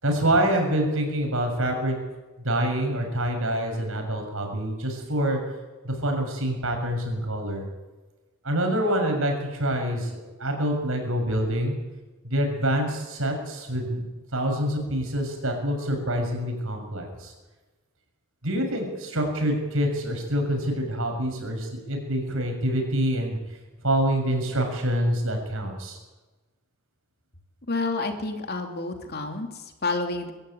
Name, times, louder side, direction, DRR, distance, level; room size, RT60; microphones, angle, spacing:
voice 1, 0.0-2.0 2.4-5.4 5.8-7.6 8.4-11.7 12.2-14.0 14.3-17.3 18.4-23.4 23.8-26.0, right 1 dB, 65° right, 3 dB, 6.6 m, -26 dB
voice 2, 27.7-30.3, left 3 dB, 45° left, 4 dB, 2.8 m, -29 dB
24.5 x 14.0 x 9.3 m, 1.2 s
head